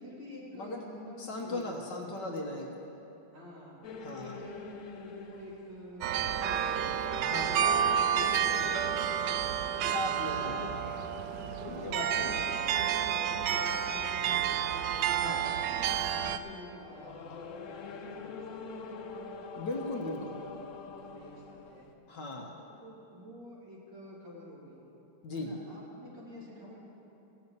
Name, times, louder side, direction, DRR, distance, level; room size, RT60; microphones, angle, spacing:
voice 1, 0.0-1.8 3.3-3.8 4.2-6.9 7.3-9.1 9.7-10.6 11.1-14.9 15.5-19.1 19.9-21.9 22.5-24.8 25.4-26.8, left 1 dB, 55° right, -6 dB, 3.5 m, -49 dB
voice 2, 1.2-2.7 4.0-4.4 7.2-7.6 9.8-10.7 11.6-12.4 15.1-15.5 19.5-20.4 22.1-22.5 25.2-25.5, left 2 dB, 60° left, 0 dB, 1.7 m, -38 dB
sound 1, 3.8-21.9, left 4 dB, 80° left, 0.7 m, -46 dB
sound 2, 6.0-16.4, right 9 dB, 75° right, 1.0 m, -30 dB
16.5 x 7.1 x 8.1 m, 3.0 s
omnidirectional pair, 2.3 m